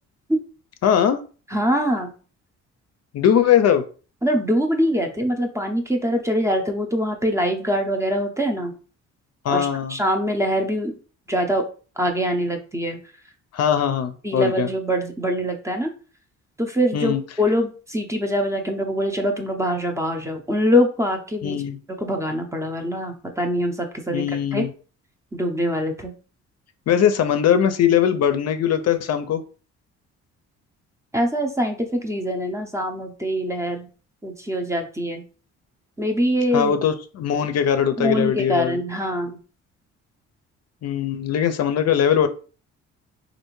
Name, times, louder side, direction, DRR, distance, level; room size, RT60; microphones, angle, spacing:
voice 1, 0.8-1.2 3.1-3.8 9.4-10.0 13.5-14.7 16.9-17.2 21.4-21.8 24.1-24.7 26.9-29.4 36.5-38.8 40.8-42.3, left 9 dB, 55° left, 9 dB, 0.5 m, -20 dB
voice 2, 1.5-2.1 4.2-8.7 9.5-10.9 11.3-11.6 12.0-13.0 14.2-15.9 16.6-21.6 22.0-24.2 24.5-24.6 25.3-26.1 31.1-33.9 34.2-35.2 36.0-36.7 38.0-39.4, equal, 10° right, 4 dB, 0.6 m, -23 dB
3.2 x 2.5 x 3.1 m, 0.37 s
cardioid pair, 90°, 30 cm